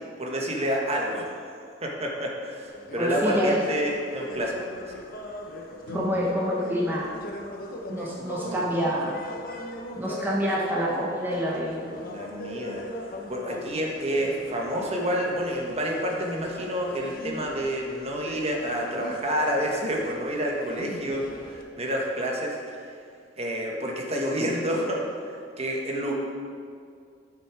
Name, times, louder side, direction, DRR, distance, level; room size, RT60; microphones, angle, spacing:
voice 1, 0.2-1.3 1.8-5.0 8.4-8.6 12.0-12.8 13.3-22.9 23.4-26.1, equal, 35° right, -1 dB, 1.3 m, -29 dB
sound 1, 2.7-21.6, left 1 dB, 50° left, 1.0 m, -40 dB
voice 2, 3.0-3.6 5.9-7.1 7.9-9.2 10.0-11.9, equal, 10° right, -5 dB, 1.0 m, -27 dB
sound 2, 5.8-8.3, left 1 dB, 80° right, 1.8 m, -40 dB
11.0 x 6.1 x 4.7 m, 2.3 s
head